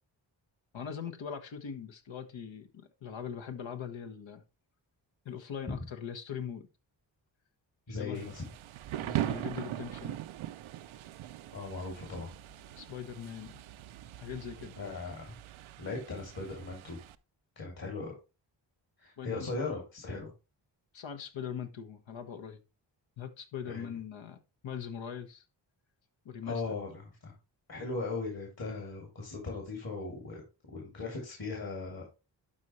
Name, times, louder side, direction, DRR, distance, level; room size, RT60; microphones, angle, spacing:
voice 1, 0.7-2.7 3.0-4.4 5.2-6.7 7.9-8.2 9.0-10.2 12.8-13.6 14.2-14.8 19.2-19.6 20.9-22.6 23.2-24.4 24.6-25.4 26.2-26.6, left 8 dB, 75° left, 1.4 m, -41 dB
voice 2, 7.9-8.4 11.5-12.3 14.8-15.3 15.8-17.0 17.6-18.1 19.0-20.3 23.6-23.9 26.5-27.3 27.7-30.4 30.7-32.0, left 3 dB, 50° left, 3.1 m, -38 dB
Thunder / Rain, 8.1-17.2, right 13 dB, 85° right, 0.6 m, -40 dB
12.0 x 4.3 x 3.1 m
cardioid pair, 60°, 46 cm